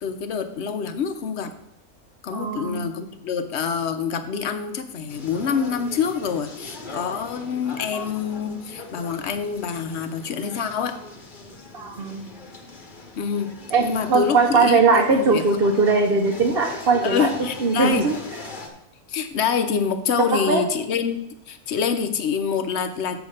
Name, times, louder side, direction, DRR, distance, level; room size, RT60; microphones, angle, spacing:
voice 1, 0.0-1.5 2.2-11.0 13.2-13.5 13.8-15.4 17.0-18.1 19.1-21.2 21.5-23.2, left 6 dB, 60° left, 9 dB, 0.9 m, -26 dB
voice 2, 2.3-2.8 11.7-12.3 13.7-17.3 17.6-18.2 20.3-20.6, right 4 dB, 50° right, 1 dB, 0.9 m, -20 dB
sound 1, 5.1-18.7, left 3 dB, 40° left, 1.1 m, -40 dB
7.1 x 4.8 x 6.5 m, 0.78 s
omnidirectional pair, 1.5 m